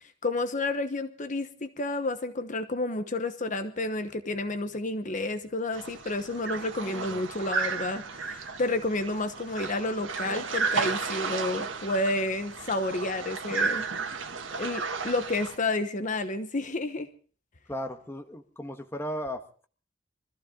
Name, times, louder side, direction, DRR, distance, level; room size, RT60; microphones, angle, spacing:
voice 1, 0.2-13.9 14.1-14.2 14.6-17.1, left 2 dB, 40° left, 9 dB, 1.1 m, -30 dB
sound 1, 5.7-15.6, right 5 dB, 80° right, 1.8 m, -33 dB
voice 2, 6.8-7.2 17.7-19.7, equal, 15° left, 5 dB, 1.4 m, -36 dB
24.0 x 14.5 x 3.8 m, 0.41 s
head